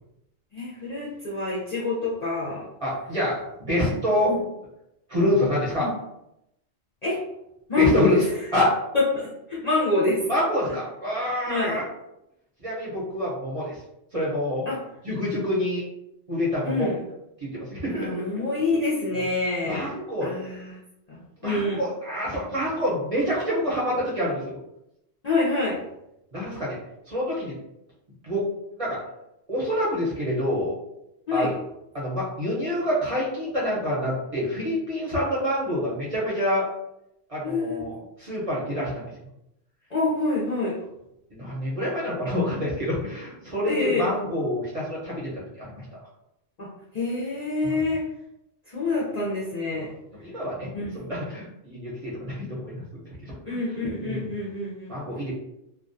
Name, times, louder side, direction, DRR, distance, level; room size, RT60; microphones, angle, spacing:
voice 1, 0.5-2.6 4.3-4.4 5.8-5.9 7.0-7.2 7.7-8.2 8.9-10.2 11.5-11.8 14.7-14.8 16.6-17.0 18.0-19.9 20.2-20.8 21.1-21.8 25.2-25.8 31.3-31.5 37.4-37.8 39.9-40.8 43.7-44.1 46.6-46.7 46.9-48.0 48.7-49.9 50.7-51.0 53.5-54.9, left 3 dB, 50° left, -7 dB, 0.5 m, -26 dB
voice 2, 2.8-4.3 5.1-5.9 7.8-8.2 8.5-8.7 10.3-11.8 12.6-13.8 14.1-14.6 15.0-15.8 16.3-16.9 17.4-18.2 19.6-20.3 21.4-24.6 26.3-26.8 27.1-27.5 28.2-28.4 28.8-29.0 29.5-30.7 31.3-31.5 31.9-36.6 37.3-39.0 41.3-45.3 45.6-45.8 47.6-47.8 50.2-50.7 50.9-52.8 53.5-53.6 54.0-54.3 54.9-55.3, left 1 dB, 35° right, -7 dB, 0.6 m, -27 dB
2.3 x 2.2 x 2.5 m, 0.84 s
omnidirectional pair, 1.2 m